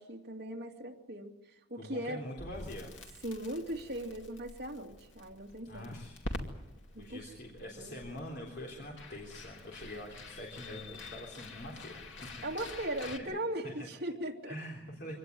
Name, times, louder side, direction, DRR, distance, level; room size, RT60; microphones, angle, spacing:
voice 1, 0.0-2.3 3.2-6.0 6.9-7.3 7.7-8.0 12.4-14.6, right 1 dB, 55° right, -1 dB, 2.7 m, -39 dB
voice 2, 1.8-2.9 5.6-6.4 7.0-12.4 13.0-13.3 13.7-13.9 14.5-15.1, left 1 dB, 55° left, -1 dB, 3.6 m, -45 dB
Crackle, 2.4-13.2, left 2 dB, 80° left, 2.5 m, -47 dB
25.5 x 18.0 x 9.4 m, 0.97 s
head